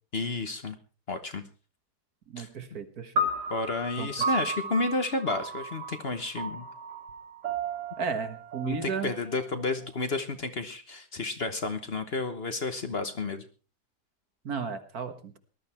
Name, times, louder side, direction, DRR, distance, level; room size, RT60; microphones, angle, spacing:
voice 1, 0.1-0.8 1.1-1.4 2.4-2.5 3.5-6.6 8.6-13.4, left 3 dB, 40° left, 8 dB, 1.3 m, -31 dB
voice 2, 2.3-3.3 4.0-4.1 8.0-9.1 14.4-15.4, right 5 dB, 65° right, 8 dB, 2.0 m, -34 dB
sound 1, 3.2-9.6, right 2 dB, 85° right, 2.7 m, -34 dB
19.5 x 12.0 x 4.4 m, 0.35 s
omnidirectional pair, 1.7 m